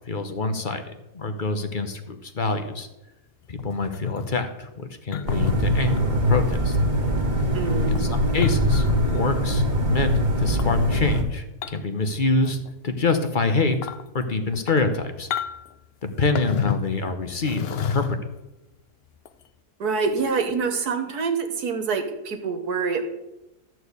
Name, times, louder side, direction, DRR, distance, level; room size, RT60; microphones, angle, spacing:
voice 1, 0.1-0.8 1.1-2.9 3.5-6.8 7.8-10.1 10.4-13.8 14.1-15.3 16.0-18.2, left 3 dB, 40° left, 7 dB, 0.9 m, -26 dB
sound 1, 3.6-4.3 5.1-5.6 6.4-6.6 7.2-9.3 10.5-11.0 11.6-12.0 12.3-12.7 13.1-13.2 13.7-14.0 14.5-14.9 15.3-15.7 16.3-16.9 17.4-18.4 19.2-19.4, left 8 dB, 65° left, 0.6 m, -30 dB
sound 2, 5.3-11.2, equal, 30° right, 1.6 m, -22 dB
voice 2, 7.5-7.9 19.8-23.1, right 5 dB, 75° right, 6 dB, 1.9 m, -26 dB
13.5 x 4.6 x 8.1 m, 0.96 s
omnidirectional pair, 1.7 m